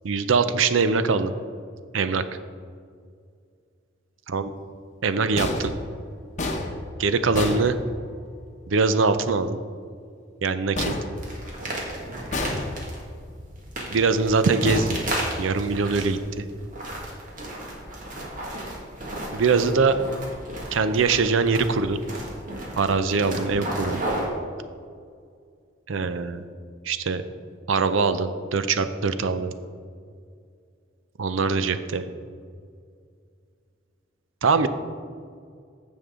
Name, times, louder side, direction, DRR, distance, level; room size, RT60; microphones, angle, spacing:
voice 1, 0.0-1.3 1.9-2.2 4.3-4.5 5.0-5.7 7.0-7.8 8.7-9.6 10.4-10.9 13.9-15.0 15.4-16.4 19.3-20.0 20.7-22.0 22.8-24.0 25.9-26.4 26.8-27.2 27.7-29.5 31.2-32.1 34.4-34.7, right 4 dB, 90° right, 11 dB, 0.6 m, -22 dB
sound 1, 5.4-8.4 10.7-11.8 12.3-13.1 14.6-15.7, left 2 dB, 40° left, 1.0 m, -31 dB
sound 2, 11.2-24.3, right 1 dB, 45° right, 1.8 m, -34 dB
14.5 x 5.4 x 3.7 m, 2.2 s
head